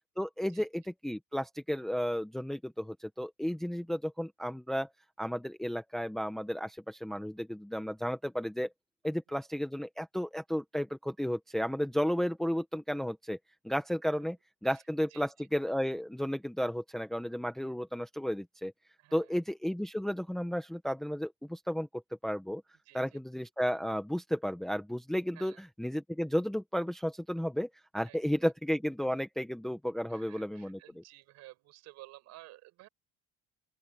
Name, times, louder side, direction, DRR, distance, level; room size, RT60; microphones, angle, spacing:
voice 1, 0.2-4.9 5.2-8.7 9.0-13.4 13.6-14.4 14.6-18.7 19.1-22.6 22.9-25.5 25.8-27.7 27.9-30.8, equal, ahead, 0.9 m, -33 dB
voice 2, 15.1-15.5 19.0-19.4 22.8-23.2 25.3-25.6 28.0-28.5 30.1-32.9, right 17 dB, 55° right, 7.4 m, -55 dB
open air
cardioid pair, 175°, 32 cm